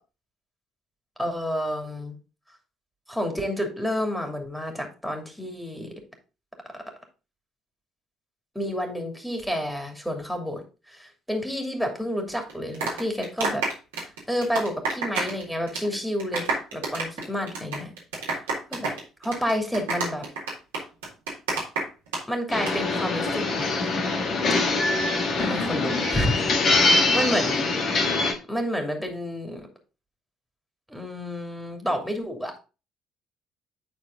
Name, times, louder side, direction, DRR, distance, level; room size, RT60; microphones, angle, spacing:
voice 1, 1.2-2.2 3.1-6.0 6.7-6.8 8.5-13.7 14.0-17.9 18.7-18.9 19.2-20.3 22.3-23.7 25.4-27.7 28.5-29.7 30.9-32.6, equal, ahead, 3 dB, 2.7 m, -30 dB
sound 1, 12.5-15.4 15.7-15.9 16.2-22.2 22.5-22.7, right 3 dB, 80° right, 2.2 m, -28 dB
sound 2, 22.5-28.3, left 3 dB, 50° left, 1.6 m, -23 dB
10.0 x 4.2 x 3.8 m, 0.32 s
figure-of-eight pair, 50°, 0 cm